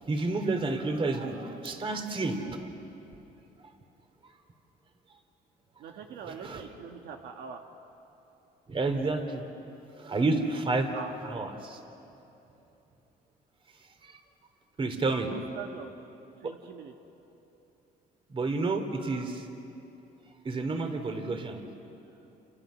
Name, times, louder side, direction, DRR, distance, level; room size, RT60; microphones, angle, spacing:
voice 1, 0.0-2.7 6.3-6.6 8.7-9.4 10.0-10.9 11.3-11.8 14.0-14.2 14.8-15.3 16.4-16.5 18.3-19.5 20.4-21.6, right 3 dB, 30° right, 6 dB, 2.9 m, -30 dB
voice 2, 5.8-7.6 10.9-11.1 15.3-15.9 16.4-16.9, right 7 dB, 75° right, 3 dB, 1.7 m, -42 dB
29.5 x 28.0 x 6.3 m, 2.9 s
cardioid pair, 110°, 17 cm